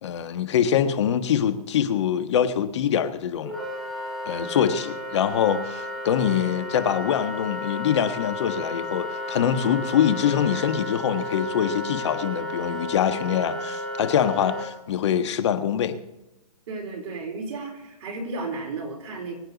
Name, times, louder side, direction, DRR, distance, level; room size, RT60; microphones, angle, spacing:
voice 1, 0.0-3.6 4.3-16.0, left 9 dB, 45° left, 9 dB, 1.4 m, -24 dB
Wind instrument woodwind instrument, 3.4-14.7, left 1 dB, ahead, 2.2 m, -33 dB
voice 2, 16.7-19.3, right 3 dB, 45° right, 0 dB, 4.5 m, -33 dB
24.5 x 8.9 x 4.0 m, 1.0 s
hypercardioid pair, 160°, 20 cm